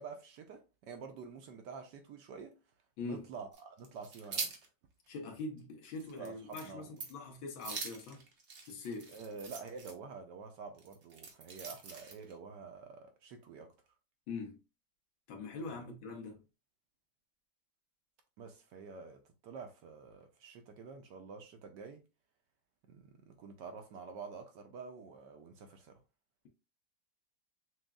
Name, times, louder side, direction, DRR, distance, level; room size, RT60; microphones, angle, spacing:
voice 1, 0.0-2.6 3.0-4.5 6.2-6.9 9.1-13.7 15.7-15.9 18.4-22.0 22.9-26.0, right 5 dB, 70° right, 1.1 m, -48 dB
sound 1, 3.5-4.7 5.1-5.2 5.6-5.7 6.0-6.3 6.5-6.7 7.0-7.2 7.6-9.9 10.8-12.3, right 5 dB, 55° right, 0.8 m, -43 dB
voice 2, 5.1-8.2 8.6-9.1 14.3-14.6 15.3-16.4, left 3 dB, 75° left, 1.7 m, -43 dB
6.1 x 2.3 x 2.3 m
omnidirectional pair, 2.2 m